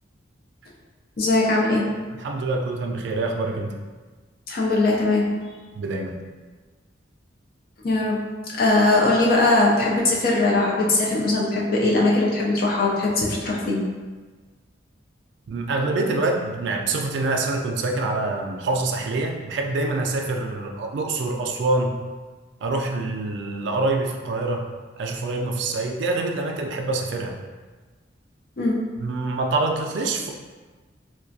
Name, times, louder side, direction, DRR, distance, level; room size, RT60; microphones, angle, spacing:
voice 1, 1.2-1.9 4.5-5.3 7.8-8.2 8.5-13.8 28.6-28.8, left 2 dB, 50° left, -3 dB, 0.5 m, -20 dB
voice 2, 2.2-3.8 5.7-6.2 15.5-22.0 22.6-24.7 25.0-27.4 29.0-30.3, right 2 dB, 70° right, 2 dB, 0.3 m, -25 dB
2.3 x 2.1 x 2.6 m, 1.4 s
head